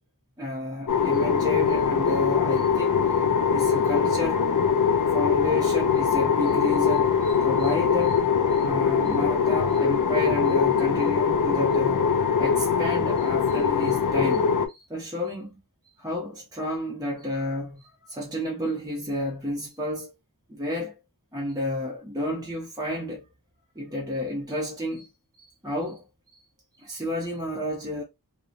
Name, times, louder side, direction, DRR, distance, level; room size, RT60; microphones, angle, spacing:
voice 1, 0.4-3.1 3.5-4.4 5.1-12.1 12.4-15.6 16.0-20.1 20.5-21.0 21.3-23.2 23.8-26.0 26.3-26.4 26.8-28.0, left 1 dB, 10° right, 0.7 m, -31 dB
sound 1, 0.9-14.7, left 6 dB, 60° left, 0.5 m, -22 dB
2.8 x 2.0 x 2.4 m
wide cardioid pair, 55°, 36 cm